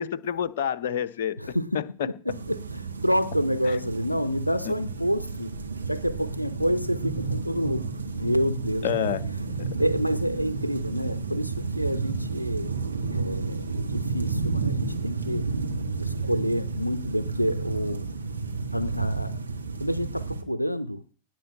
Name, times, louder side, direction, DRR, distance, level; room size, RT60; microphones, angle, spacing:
voice 1, 0.0-1.8 3.7-3.8 4.6-4.7 8.8-9.2 9.6-9.7, left 9 dB, 55° left, 0.8 m, -28 dB
voice 2, 1.4-5.5 5.9-7.9 8.1-9.1 9.8-12.7 13.1-15.5 16.0-18.1 18.7-19.4 19.8-21.0, equal, 90° left, 0.6 m, -28 dB
sound 1, 2.3-20.4, right 4 dB, 80° right, 1.6 m, -31 dB
Purr, 5.4-11.4 12.1-12.2, right 4 dB, 40° right, 3.5 m, -50 dB
18.0 x 6.2 x 8.8 m
figure-of-eight pair, 90°, 0 cm